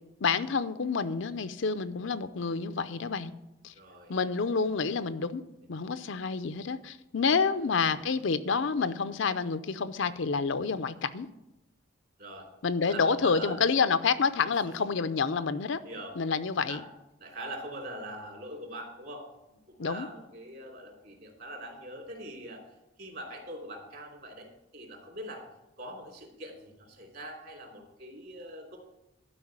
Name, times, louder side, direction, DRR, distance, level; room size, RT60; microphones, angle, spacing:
voice 1, 0.2-3.3 3.6-3.7 4.1-5.4 5.7-11.3 12.6-15.8 16.2-16.8 19.8-20.1, left 5 dB, 65° left, 12 dB, 0.6 m, -28 dB
voice 2, 3.7-4.2 7.6-8.0 12.2-12.5 12.8-13.6 14.4-14.9 15.8-16.2 16.7-16.9 17.2-19.2 19.7-22.6 23.0-24.5 24.7-25.4 25.8-28.8, right 1 dB, 50° right, 1 dB, 3.1 m, -43 dB
12.0 x 5.1 x 8.7 m, 0.90 s
head